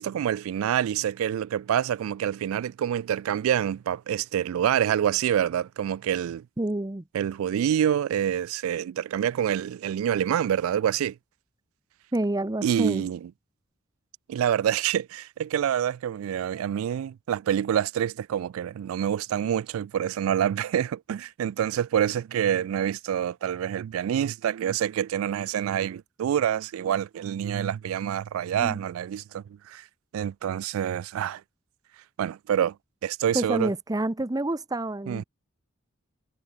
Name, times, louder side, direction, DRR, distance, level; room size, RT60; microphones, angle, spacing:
voice 1, 0.0-6.4 7.1-11.1 12.6-13.2 14.3-29.8 30.1-31.4 32.2-32.7 33.0-33.7 35.1-35.2, right 9 dB, 85° right, 0.3 m, -27 dB
voice 2, 6.6-7.0 12.1-13.1 28.6-28.8 33.3-35.2, right 1 dB, 20° right, 0.7 m, -28 dB
head